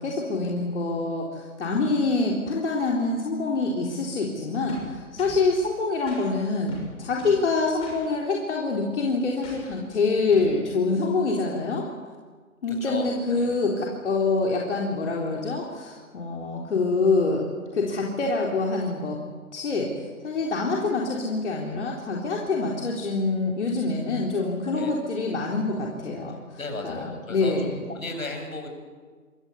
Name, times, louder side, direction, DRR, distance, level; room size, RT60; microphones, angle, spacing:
voice 1, 0.0-11.9 12.6-19.2 19.5-26.6 26.8-27.8, left 3 dB, 55° left, -1 dB, 4.0 m, -26 dB
sound 1, 4.7-5.5 6.1-6.2 6.7-7.5 7.8-8.0 9.4-9.8 10.3-10.6, left 2 dB, 15° left, 6.4 m, -42 dB
voice 2, 12.8-13.6 24.6-24.9 26.6-28.7, left 2 dB, 70° left, 5 dB, 7.7 m, -35 dB
26.5 x 22.5 x 8.5 m, 1.5 s
hypercardioid pair, 155°, 42 cm